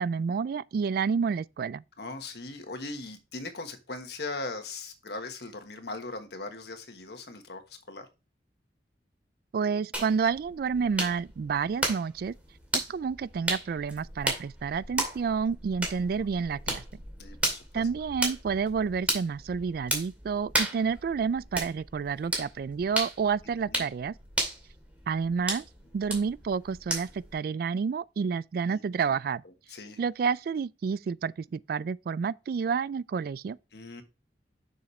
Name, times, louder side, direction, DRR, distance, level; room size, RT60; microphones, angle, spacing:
voice 1, 0.0-1.8 9.5-12.3 12.7-16.8 17.7-24.1 25.1-25.7 25.9-29.4 30.0-33.6, right 6 dB, 55° right, 0.3 m, -29 dB
voice 2, 2.0-8.1 16.0-16.3 17.2-17.9 23.6-23.8 28.7-28.8 29.7-30.0 33.7-34.0, left 3 dB, 65° left, 1.4 m, -39 dB
sound 1, 9.9-27.3, right 1 dB, 10° right, 2.3 m, -35 dB
6.9 x 6.5 x 3.2 m
head